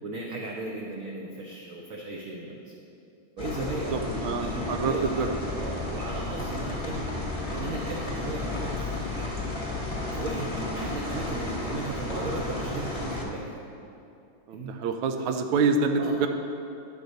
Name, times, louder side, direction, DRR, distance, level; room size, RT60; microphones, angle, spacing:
voice 1, 0.0-2.8 3.4-5.3 5.6-7.1 7.5-9.6 10.1-13.6 14.5-14.7 15.5-15.6 16.0-16.3, right 2 dB, 60° right, -2 dB, 0.9 m, -36 dB
sound 1, 3.4-13.2, left 2 dB, 20° left, 0.9 m, -33 dB
voice 2, 3.9-5.3 14.5-16.3, right 4 dB, 85° right, 6 dB, 1.4 m, -26 dB
9.9 x 4.0 x 6.4 m, 2.6 s
omnidirectional pair, 2.2 m